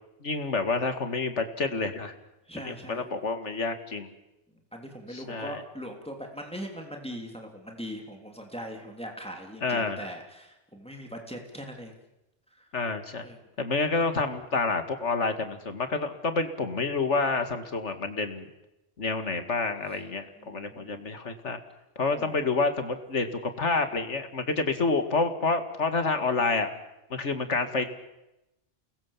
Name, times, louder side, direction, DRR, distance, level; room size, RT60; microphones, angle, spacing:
voice 1, 0.2-2.1 2.6-4.1 5.1-5.6 9.6-10.1 12.7-13.2 13.6-18.5 19.0-21.6 22.0-26.7 27.1-27.9, left 3 dB, 80° left, 8 dB, 2.4 m, -28 dB
voice 2, 2.5-3.1 4.7-11.9 12.5-12.7 13.2-13.4 20.4-21.0 22.1-22.4, equal, 5° left, 2 dB, 3.3 m, -41 dB
29.5 x 20.5 x 7.4 m, 0.94 s
omnidirectional pair, 1.2 m